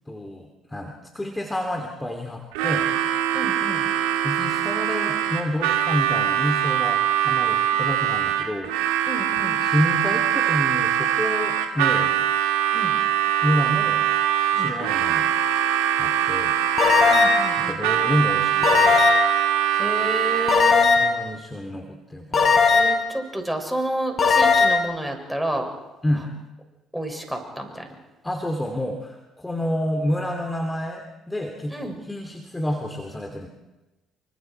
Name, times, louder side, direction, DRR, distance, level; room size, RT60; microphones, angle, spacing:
voice 1, 0.1-2.9 4.2-8.7 9.6-12.2 13.4-14.0 14.5-15.3 16.0-16.6 17.6-19.0 21.0-22.7 26.0-26.3 28.2-33.5, left 1 dB, 15° left, 4 dB, 3.0 m, -29 dB
Harmonica, 2.5-20.8, right 10 dB, 75° right, 2.3 m, -23 dB
voice 2, 3.3-3.9 9.1-9.6 12.7-13.0 14.5-14.8 17.1-17.9 19.7-20.9 22.7-25.7 26.9-27.9 31.7-32.0, right 1 dB, 5° right, 3 dB, 6.6 m, -30 dB
sound 1, 16.8-17.5 18.6-19.4 20.5-21.2 22.3-23.1 24.2-24.8, left 4 dB, 40° left, 5.1 m, -18 dB
29.5 x 25.0 x 4.7 m, 1.1 s
hypercardioid pair, 55°, 0 cm